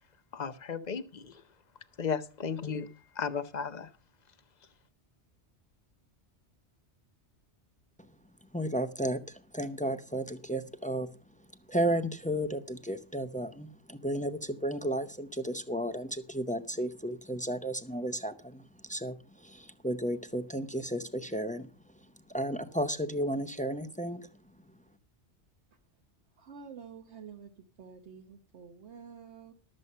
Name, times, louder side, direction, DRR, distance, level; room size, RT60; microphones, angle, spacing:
voice 1, 0.3-1.4 2.0-3.9, left 6 dB, 45° left, 11 dB, 0.9 m, -35 dB
voice 2, 8.5-11.1 11.7-22.0 22.3-24.3, right 1 dB, 10° left, 10 dB, 0.6 m, -33 dB
voice 3, 26.3-29.5, right 6 dB, 80° right, 3 dB, 1.3 m, -49 dB
12.5 x 7.6 x 5.5 m, 0.36 s
omnidirectional pair, 1.1 m